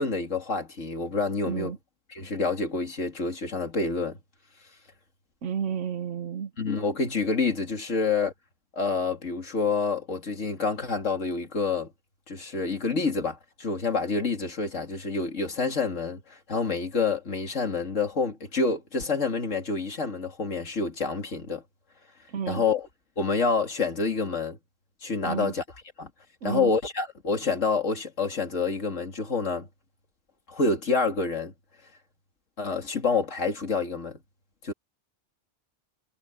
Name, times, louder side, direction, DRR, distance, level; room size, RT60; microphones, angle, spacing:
voice 1, 0.0-1.7 2.1-4.2 6.6-8.3 8.7-11.9 12.3-21.6 22.5-22.9 23.2-24.6 25.0-25.6 26.0-26.1 26.4-29.7 30.5-31.5 32.6-34.2 34.6-34.7, left 4 dB, 90° left, 2.9 m, -27 dB
voice 2, 1.5-1.8 5.4-6.5 22.3-22.6 25.2-25.5 26.4-26.7, right 7 dB, 75° right, 1.3 m, -31 dB
omnidirectional pair, 1.3 m